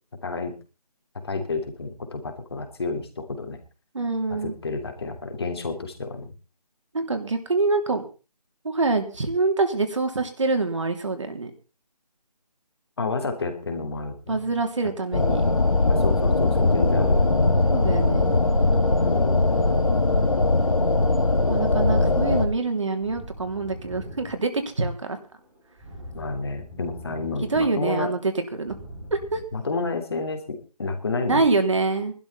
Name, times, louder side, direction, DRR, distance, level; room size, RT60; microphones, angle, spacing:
voice 1, 0.2-0.6 1.2-3.6 4.4-6.3 13.0-14.5 15.9-17.5 19.0-19.5 26.1-28.1 29.5-31.5, left 3 dB, 40° left, 6 dB, 3.1 m, -30 dB
voice 2, 3.9-4.5 6.9-8.1 8.6-11.5 14.3-15.4 17.7-18.3 21.5-25.2 27.5-28.7 29.1-29.4 31.3-32.1, right 3 dB, 45° right, 6 dB, 3.2 m, -25 dB
sound 1, 15.1-22.5, left 2 dB, 55° left, 2.5 m, -20 dB
sound 2, 23.0-24.9 25.2-27.7 28.0-29.4, equal, 5° right, 3.9 m, -43 dB
19.5 x 12.5 x 4.2 m, 0.34 s
figure-of-eight pair, 160°, 21 cm